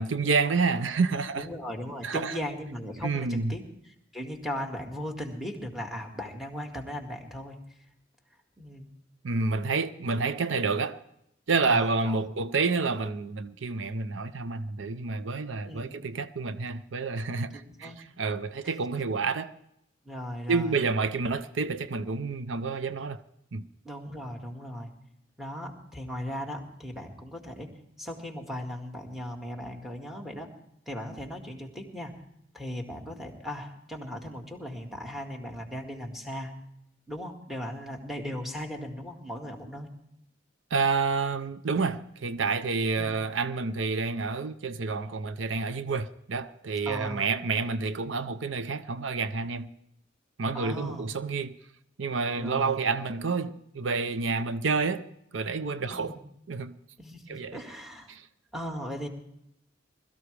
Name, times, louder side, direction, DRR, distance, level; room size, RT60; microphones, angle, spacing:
voice 1, 0.0-1.5 2.0-2.4 3.0-3.5 9.2-11.0 11.5-17.9 18.2-19.6 20.5-23.2 23.5-23.7 40.7-49.7 50.4-51.6 52.0-55.0 55.3-56.2 56.5-56.8 57.3-57.6 58.1-58.3, right 4 dB, 80° right, 0.7 m, -29 dB
voice 2, 1.4-3.6 4.1-7.6 8.6-8.9 11.6-12.3 15.7-15.9 17.5-18.3 18.6-18.8 20.0-20.8 23.8-24.9 25.4-27.7 28.0-30.5 30.9-32.1 32.5-36.5 37.1-39.9 43.0-43.2 46.9-47.2 50.5-51.1 52.4-52.8 55.8-56.2 57.0-58.1 58.5-59.1, equal, ahead, 2.0 m, -37 dB
21.5 x 13.5 x 3.4 m
head